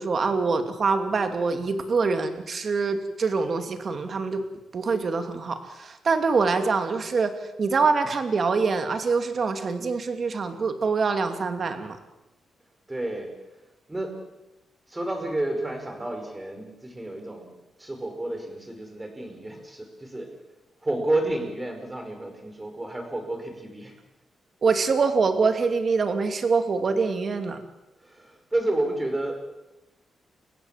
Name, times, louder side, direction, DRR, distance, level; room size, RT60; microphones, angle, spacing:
voice 1, 0.0-4.4 4.7-7.3 7.6-12.0 24.6-27.6, right 4 dB, 45° right, 7 dB, 2.6 m, -24 dB
voice 2, 12.9-13.3 13.9-14.3 14.9-17.5 17.8-20.4 20.8-23.9 28.0-29.5, right 1 dB, 15° right, 4 dB, 5.2 m, -30 dB
29.5 x 16.0 x 7.5 m, 0.98 s
cardioid pair, 120°, 0 cm